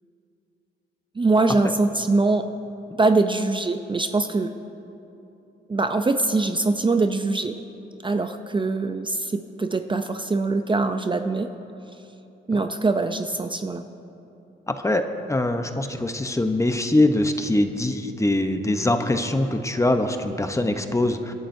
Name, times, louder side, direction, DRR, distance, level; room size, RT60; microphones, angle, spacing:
voice 1, 1.2-2.4 3.0-4.5 5.7-7.6 8.0-11.5 12.5-13.8, right 3 dB, 25° right, 7 dB, 0.6 m, -23 dB
voice 2, 14.7-21.3, left 1 dB, 15° left, 7 dB, 0.9 m, -23 dB
27.5 x 11.0 x 2.7 m, 2.8 s
cardioid pair, 75°, 20 cm